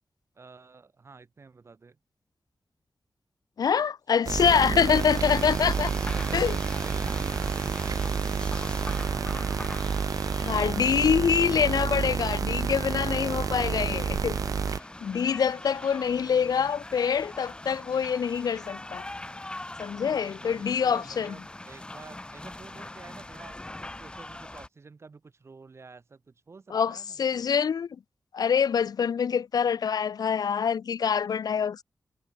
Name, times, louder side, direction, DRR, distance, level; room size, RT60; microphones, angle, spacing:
voice 1, 0.3-2.0 4.4-5.2 5.8-8.2 8.8-9.6 16.0-16.7 20.4-27.5, right 4 dB, 40° right, 5.3 m, -50 dB
voice 2, 3.6-5.9 6.3-6.6 10.4-14.4 15.0-19.1 19.8-21.3 26.7-27.9 28.3-31.8, left 7 dB, 75° left, 0.5 m, -25 dB
sound 1, 4.3-14.8, right 6 dB, 60° right, 1.0 m, -29 dB
sound 2, 4.9-24.7, left 2 dB, 15° left, 1.5 m, -42 dB
wide cardioid pair, 175°, 7 cm